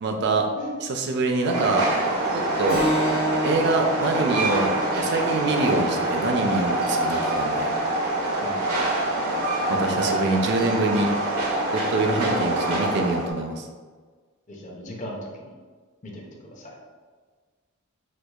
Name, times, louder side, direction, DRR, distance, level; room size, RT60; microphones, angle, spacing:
voice 1, 0.0-0.5 0.8-1.9 2.6-2.8 3.4-4.7 5.0-7.7 9.7-11.1 11.7-13.7, right 2 dB, 55° right, 4 dB, 0.4 m, -25 dB
Train, 1.4-13.3, right 1 dB, 90° right, 0.7 m, -25 dB
Keyboard (musical), 2.7-7.8, equal, 75° left, 1.2 m, -32 dB
voice 2, 14.5-15.5 16.0-16.7, equal, 35° left, -1 dB, 0.5 m, -37 dB
4.4 x 2.4 x 2.3 m, 1.5 s
head